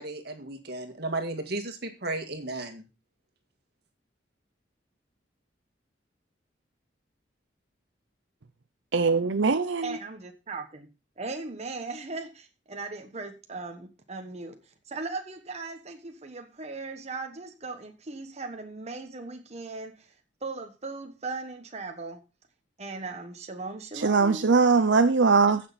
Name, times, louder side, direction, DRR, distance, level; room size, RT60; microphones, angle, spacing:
voice 1, 0.0-2.8, right 2 dB, 60° right, 1.9 m, -34 dB
voice 2, 8.9-10.0 23.9-25.6, right 4 dB, 80° right, 0.7 m, -21 dB
voice 3, 9.8-10.9 11.2-14.6 14.9-20.1 20.4-22.2 22.8-24.4, right 3 dB, 35° right, 1.2 m, -38 dB
15.5 x 6.4 x 4.1 m
head